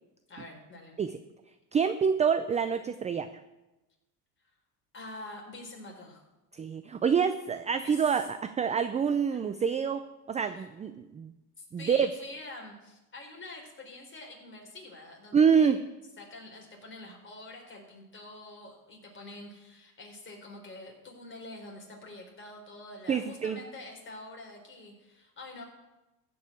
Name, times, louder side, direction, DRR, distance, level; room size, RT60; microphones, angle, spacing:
voice 1, 0.3-1.0 4.9-6.2 7.7-8.1 10.5-10.7 11.6-15.7 16.2-25.6, left 2 dB, 25° left, 0 dB, 4.0 m, -46 dB
voice 2, 1.7-3.3 6.5-11.3 11.7-12.1 15.3-15.8 23.1-23.6, right 6 dB, 15° right, 10 dB, 0.4 m, -27 dB
15.0 x 5.5 x 7.6 m, 1.0 s
supercardioid pair, 100°, 47 cm